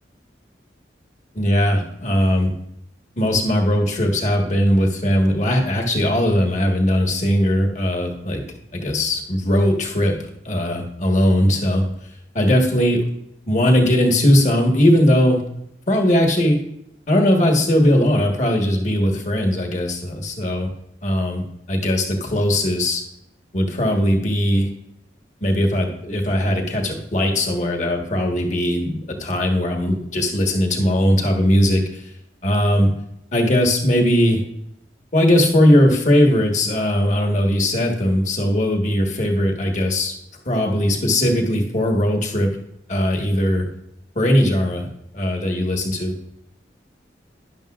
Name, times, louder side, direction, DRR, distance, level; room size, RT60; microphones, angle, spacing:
voice 1, 1.3-2.5 3.2-8.4 8.7-11.9 12.3-13.1 13.5-15.4 15.9-16.6 17.1-20.7 21.0-21.4 21.7-23.0 23.5-24.7 25.4-32.1 32.4-32.9 33.3-34.4 35.1-40.1 40.4-42.5 42.9-43.7 44.1-44.9 45.1-46.1, equal, 45° left, 2 dB, 1.5 m, -19 dB
12.0 x 10.5 x 2.5 m, 0.78 s
head